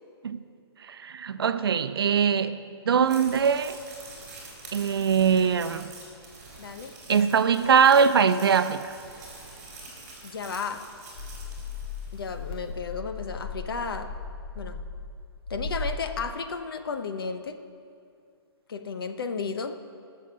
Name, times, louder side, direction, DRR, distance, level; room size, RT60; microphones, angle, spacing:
voice 1, 0.9-2.6 2.9-3.8 4.7-5.9 7.1-8.9, right 6 dB, 60° right, 0.6 m, -22 dB
sound 1, 2.9-12.4, right 3 dB, 20° right, 3.4 m, -46 dB
voice 2, 6.6-6.9 10.2-10.9 12.1-14.1 14.5-14.8 15.5-17.6 18.7-19.8, left 5 dB, 60° left, 1.0 m, -33 dB
sound 2, 11.2-16.2, left 4 dB, 25° left, 0.7 m, -37 dB
18.5 x 6.7 x 6.8 m
hypercardioid pair, 175°, 14 cm